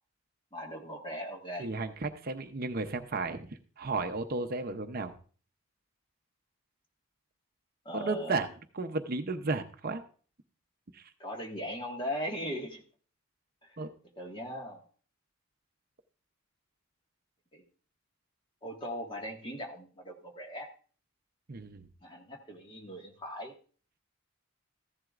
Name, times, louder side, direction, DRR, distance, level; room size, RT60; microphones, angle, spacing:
voice 1, 0.5-1.7 7.8-8.4 11.2-12.8 13.6-13.8 14.1-14.9 17.5-17.6 18.6-20.7 22.0-23.5, equal, 25° left, 0 dB, 1.7 m, -39 dB
voice 2, 1.6-3.5 3.8-5.2 7.9-8.5 8.7-10.0 10.9-11.0 13.8-13.9 21.5-21.9, right 3 dB, 45° right, 6 dB, 0.7 m, -33 dB
14.5 x 11.0 x 2.5 m, 0.41 s
head